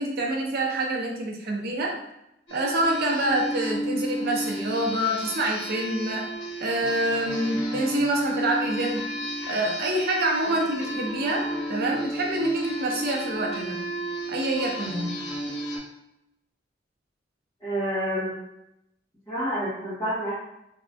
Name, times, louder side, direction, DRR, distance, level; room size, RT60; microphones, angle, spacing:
voice 1, 0.0-1.9 2.5-6.2 6.6-9.1 9.5-13.8 14.3-15.2, right 1 dB, 55° right, 0 dB, 0.6 m, -26 dB
sound 1, 2.5-15.8, equal, 75° left, 1.2 m, -32 dB
voice 2, 17.6-18.4 19.3-20.4, equal, 20° left, -13 dB, 0.9 m, -28 dB
3.4 x 2.4 x 2.4 m, 0.85 s
head